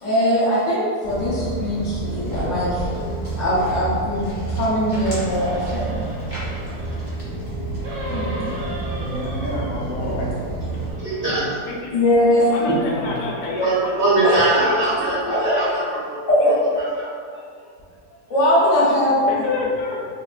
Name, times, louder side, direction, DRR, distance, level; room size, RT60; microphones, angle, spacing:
voice 1, 0.0-2.8 3.4-5.9 6.5-6.7 7.5-7.6 8.1-8.4 11.9-12.5 14.2-14.3 15.2-15.6 16.3-16.5 18.3-19.4, left 1 dB, 50° left, -9 dB, 1.2 m, -20 dB
Walk footsteps, 1.0-10.9, right 2 dB, 10° left, 0.9 m, -29 dB
sound 1, 4.9-7.2 7.8-10.3 10.6-11.6 12.3-13.6 14.2-14.3, right 1 dB, 80° right, 1.3 m, -37 dB
voice 2, 8.0-8.5 8.9-10.3 11.2-11.4 12.9-13.1, left 1 dB, 70° left, -4 dB, 0.9 m, -30 dB
voice 3, 11.0-11.6 12.7-12.8 13.6-16.2 16.4-16.5 16.9-17.1, right 2 dB, 55° right, -9 dB, 0.8 m, -21 dB
voice 4, 11.6-12.0 12.3-14.2 15.5-15.7 16.4-16.5 19.3-20.0, left 3 dB, 90° left, -2 dB, 1.2 m, -28 dB
3.6 x 2.1 x 2.5 m, 2.1 s
omnidirectional pair, 1.8 m